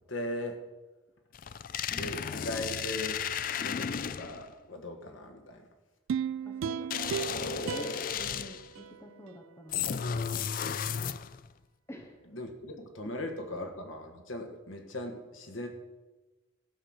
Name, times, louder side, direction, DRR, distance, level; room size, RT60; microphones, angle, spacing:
voice 1, 0.1-0.6 1.9-5.6 12.3-15.7, left 1 dB, 80° left, 3 dB, 1.6 m, -39 dB
sound 1, 1.3-4.5 6.9-8.7 9.7-11.5, left 7 dB, 45° left, 0.3 m, -34 dB
sound 2, 6.1-9.4 9.8-9.9, right 8 dB, 80° right, 0.3 m, -36 dB
voice 2, 6.4-10.0 11.9-12.2 13.0-13.1 13.5-13.7, left 1 dB, 15° left, 4 dB, 1.1 m, -48 dB
14.5 x 5.8 x 6.5 m, 1.2 s
head